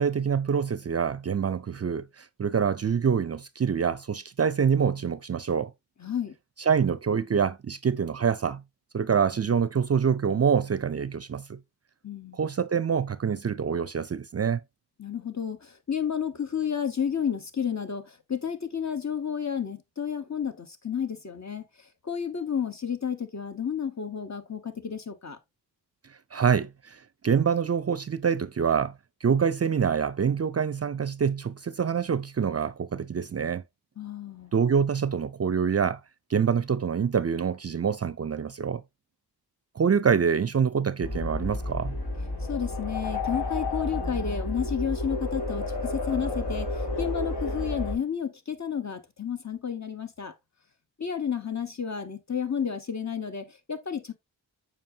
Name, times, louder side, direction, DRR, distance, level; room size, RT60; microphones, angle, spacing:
voice 1, 0.0-5.7 6.7-8.6 8.9-11.6 12.3-14.6 26.3-28.9 29.2-33.6 34.5-36.0 36.3-38.8 39.8-42.0, right 7 dB, 40° right, 0.5 m, -26 dB
voice 2, 6.0-6.3 12.0-12.4 15.0-21.6 22.0-25.4 34.0-34.5 42.5-50.3 51.0-54.1, left 7 dB, 45° left, 1.3 m, -31 dB
sound 1, 41.0-48.0, left 2 dB, 75° left, 3.3 m, -31 dB
7.6 x 5.0 x 2.8 m
cardioid pair, 60°, 40 cm